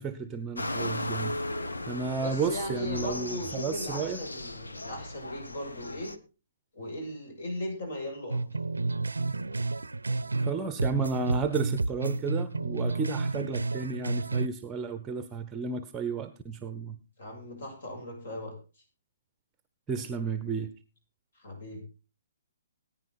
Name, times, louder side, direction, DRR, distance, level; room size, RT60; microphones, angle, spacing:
voice 1, 0.0-1.4 1.9-4.2 10.4-17.0 19.9-20.7, right 5 dB, 15° right, 12 dB, 0.9 m, -32 dB
sound 1, 0.6-6.2, left 2 dB, 75° left, 1.3 m, -36 dB
voice 2, 2.2-6.1 6.7-8.4 17.2-18.5 21.3-21.8, left 1 dB, 55° left, 2 dB, 7.4 m, -37 dB
sound 2, 8.3-10.5 10.8-14.5, right 3 dB, 75° right, 0.6 m, -30 dB
18.0 x 10.0 x 4.1 m, 0.33 s
figure-of-eight pair, 130°, 0 cm